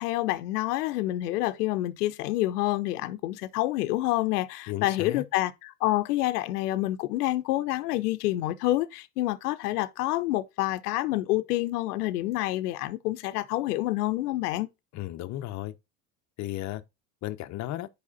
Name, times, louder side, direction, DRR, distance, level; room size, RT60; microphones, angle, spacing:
voice 1, 0.0-14.7, left 16 dB, 75° left, 0.7 m, -28 dB
voice 2, 4.7-5.2 14.9-15.7 16.4-16.8 17.2-17.9, left 14 dB, 35° left, 0.7 m, -34 dB
4.9 x 4.8 x 4.0 m
hypercardioid pair, 85°, 47 cm